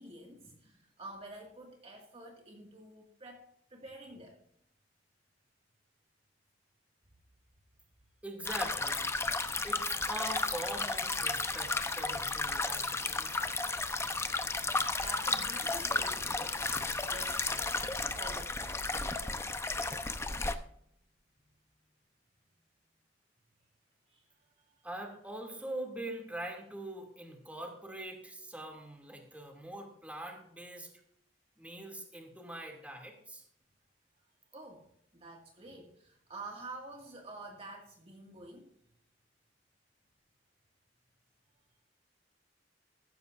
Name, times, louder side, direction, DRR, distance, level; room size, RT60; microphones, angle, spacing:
voice 1, 0.0-4.4 15.0-16.6 17.1-17.9 18.1-18.8 24.1-24.3 24.6-24.8 34.5-34.9 35.1-38.7, right 2 dB, 35° right, 1 dB, 2.0 m, -48 dB
voice 2, 8.2-9.1 9.6-13.5 24.8-30.9 31.6-33.4, right 1 dB, 10° right, 2 dB, 2.5 m, -43 dB
sound 1, 8.5-20.5, left 3 dB, 15° left, 0.8 m, -33 dB
15.5 x 14.0 x 2.6 m, 0.68 s
head